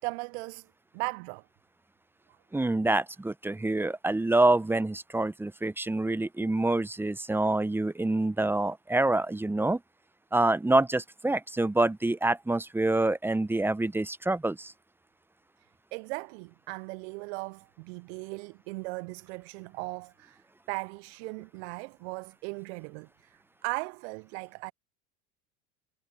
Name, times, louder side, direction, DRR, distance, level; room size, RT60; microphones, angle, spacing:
voice 1, 0.0-0.7 0.9-1.4 15.9-20.4 20.7-24.7, right 30 dB, 55° right, 0.6 m, -38 dB
voice 2, 2.5-9.8 10.3-14.7, right 2 dB, 5° right, 0.8 m, -26 dB
hypercardioid pair, 80°, 39 cm